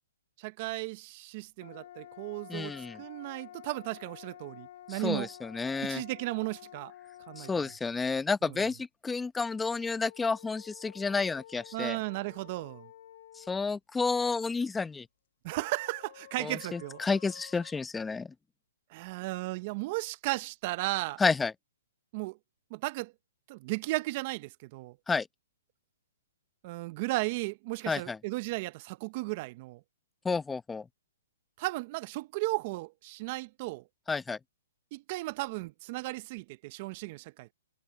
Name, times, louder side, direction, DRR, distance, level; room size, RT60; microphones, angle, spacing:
voice 1, 0.4-5.3 5.8-6.9 7.3-7.5 11.7-12.9 15.4-17.0 18.9-21.2 22.1-22.4 22.7-23.1 23.5-25.0 26.6-29.8 31.6-33.8 34.9-37.5, right 22 dB, 40° right, 0.7 m, -35 dB
sound 1, 1.6-7.8 9.4-13.6 15.5-17.7, left 12 dB, 55° left, 6.7 m, -51 dB
voice 2, 2.5-3.0 4.9-6.0 7.4-12.0 13.4-15.1 16.4-18.3 21.2-21.5 25.1-25.3 27.9-28.2 30.2-30.8 34.1-34.4, left 4 dB, 10° left, 0.9 m, -31 dB
hypercardioid pair, 150°, 0 cm